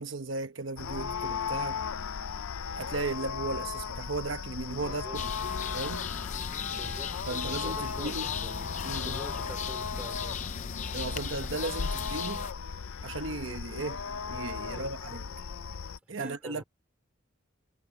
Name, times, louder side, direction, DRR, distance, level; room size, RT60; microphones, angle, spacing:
voice 1, 0.0-1.8 2.8-5.2 5.7-6.1 7.3-8.3 8.8-9.2 10.9-12.4 13.0-14.0 14.3-15.3 16.1-16.6, right 3 dB, 65° right, 1.0 m, -36 dB
sound 1, 0.8-16.0, left 6 dB, 75° left, 0.5 m, -36 dB
voice 2, 4.8-5.2 6.7-10.5 14.7-14.9 16.0-16.6, equal, 5° right, 3.2 m, -47 dB
sound 2, 5.1-12.5, left 6 dB, 35° left, 0.6 m, -37 dB
head